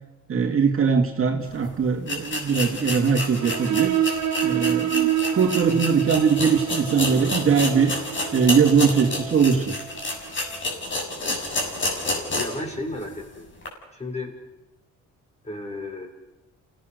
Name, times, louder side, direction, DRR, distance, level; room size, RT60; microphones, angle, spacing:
voice 1, 0.3-3.9 4.4-7.9 8.3-9.7, right 6 dB, 45° right, 3 dB, 2.6 m, -21 dB
sound 1, 1.5-1.6 2.0-12.7 13.0-13.1 13.6-13.7, left 2 dB, 40° left, 6.9 m, -29 dB
sound 2, 3.4-10.7, right 11 dB, 70° right, 1.8 m, -28 dB
voice 2, 12.3-13.5 13.9-14.3 15.4-16.1, left 2 dB, 20° left, 2 dB, 6.6 m, -33 dB
29.0 x 18.0 x 6.7 m, 0.97 s
cardioid pair, 90°, 30 cm